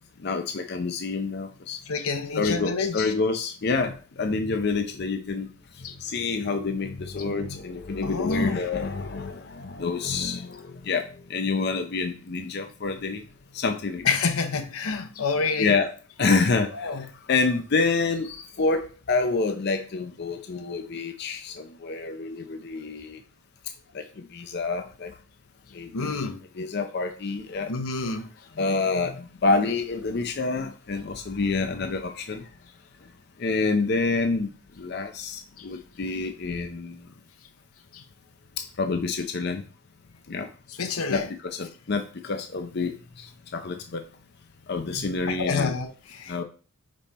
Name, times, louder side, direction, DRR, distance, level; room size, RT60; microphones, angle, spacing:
voice 1, 0.2-1.8 2.4-5.5 5.8-13.2 13.5-14.1 15.6-15.9 16.2-23.2 23.9-25.2 25.7-26.1 26.6-27.7 28.6-32.5 33.4-34.5 34.8-37.1 38.6-39.6 40.3-40.5 41.1-44.1 44.7-45.8 46.3-46.4, left 4 dB, 50° left, 0.5 m, -28 dB
voice 2, 1.9-3.1 5.8-6.0 8.0-8.6 14.0-15.8 16.7-17.1 25.9-26.4 27.7-28.3 35.6-35.7 37.9-38.0 40.7-41.3 45.3-46.4, left 4 dB, 85° left, 0.8 m, -28 dB
5.4 x 4.2 x 4.2 m
head